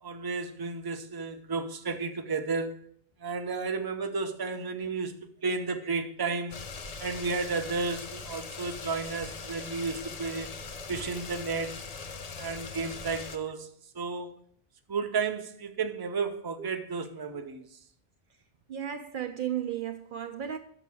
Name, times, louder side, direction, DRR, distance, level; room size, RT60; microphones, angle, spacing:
voice 1, 0.0-2.8 3.2-5.1 5.4-6.6 7.0-10.5 10.9-11.8 12.4-14.3 14.9-17.7, right 4 dB, 25° right, 0.7 m, -32 dB
sound 1, 6.5-13.4, left 4 dB, 45° left, 0.7 m, -41 dB
voice 2, 18.7-20.6, right 10 dB, 60° right, 0.7 m, -34 dB
6.5 x 6.0 x 7.4 m
omnidirectional pair, 1.1 m